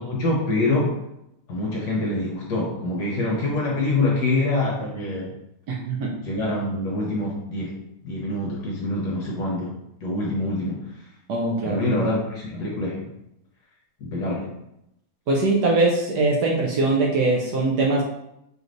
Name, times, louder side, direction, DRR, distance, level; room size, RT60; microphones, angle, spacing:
voice 1, 0.1-1.0 1.5-5.3 6.2-7.8 8.0-9.7 10.0-10.9 11.6-13.1 14.0-14.5, left 2 dB, 60° left, -3 dB, 1.2 m, -25 dB
voice 2, 5.7-6.1 11.3-11.8 15.3-18.0, right 2 dB, 70° right, -1 dB, 1.0 m, -21 dB
4.9 x 3.1 x 2.5 m, 0.82 s
omnidirectional pair, 2.3 m